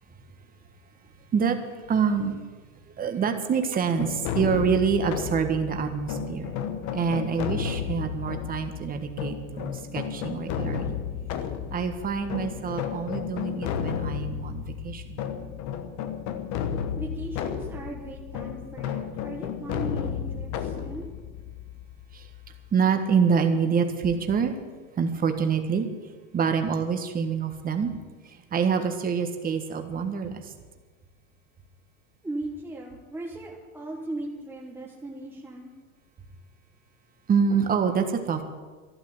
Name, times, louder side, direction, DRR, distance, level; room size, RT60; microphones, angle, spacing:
voice 1, 1.9-2.4 3.0-6.5 6.9-11.0 11.7-15.2 22.1-22.3 22.7-24.6 25.0-25.9 26.3-27.9 28.3-30.5 37.3-38.4, right 6 dB, 20° right, 6 dB, 1.5 m, -26 dB
sound 1, 4.0-22.7, left 8 dB, 45° left, 1.2 m, -33 dB
voice 2, 17.0-21.1 32.2-35.7, right 2 dB, 5° right, -3 dB, 1.4 m, -38 dB
12.5 x 11.5 x 7.8 m, 1.4 s
supercardioid pair, 135°, 40 cm